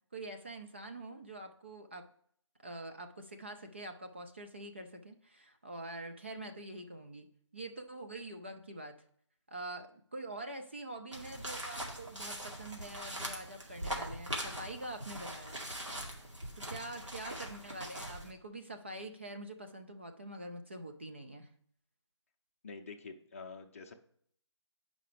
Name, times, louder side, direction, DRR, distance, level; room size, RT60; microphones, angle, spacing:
voice 1, 0.1-2.1 2.6-7.3 7.5-9.0 9.5-15.6 16.6-21.5, right 2 dB, 25° right, 4 dB, 0.3 m, -45 dB
sound 1, 11.1-18.3, right 1 dB, 85° right, 2.1 m, -42 dB
voice 2, 22.6-23.9, left 4 dB, 30° left, 4 dB, 0.6 m, -47 dB
9.0 x 5.0 x 3.3 m, 0.65 s
figure-of-eight pair, 150°, 15 cm